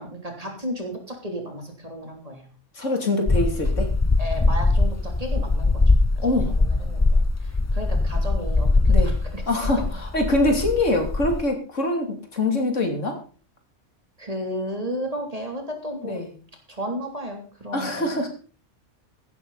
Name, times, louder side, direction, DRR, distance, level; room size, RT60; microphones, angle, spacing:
voice 1, 0.0-2.5 4.2-5.8 6.2-6.3 6.6-9.4 14.2-16.2 16.7-18.2, equal, 30° right, 2 dB, 3.3 m, -33 dB
voice 2, 2.7-3.9 6.2-6.6 8.9-9.1 9.5-13.2 16.0-16.3 17.7-18.3, left 2 dB, 75° left, 3 dB, 3.4 m, -24 dB
sound 1, 3.3-11.4, left 3 dB, 30° left, 0.3 m, -21 dB
15.0 x 13.0 x 4.1 m, 0.38 s
omnidirectional pair, 1.3 m